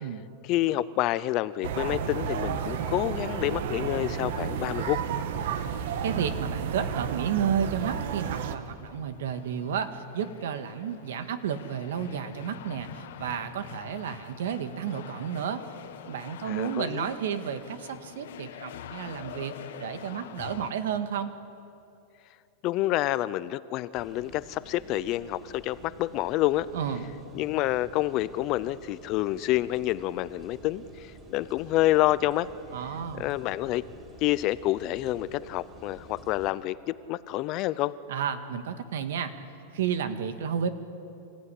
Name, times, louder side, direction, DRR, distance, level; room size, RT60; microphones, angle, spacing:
voice 1, 0.4-5.0 16.5-17.1 22.6-26.7 27.3-32.5 33.1-33.8 34.2-37.9, left 16 dB, 35° left, 17 dB, 0.5 m, -28 dB
sound 1, 1.6-8.6, right 7 dB, 60° right, 1.4 m, -32 dB
voice 2, 6.0-15.7 16.1-21.3 26.7-27.1 32.7-33.3 38.1-39.3 39.7-40.7, right 8 dB, 80° right, 10 dB, 1.8 m, -32 dB
sound 2, 7.8-20.7, left 10 dB, 70° left, 1.4 m, -46 dB
sound 3, 23.9-36.5, right 1 dB, 15° right, 4.8 m, -50 dB
27.0 x 15.5 x 10.0 m, 2.8 s
supercardioid pair, 165°, 0 cm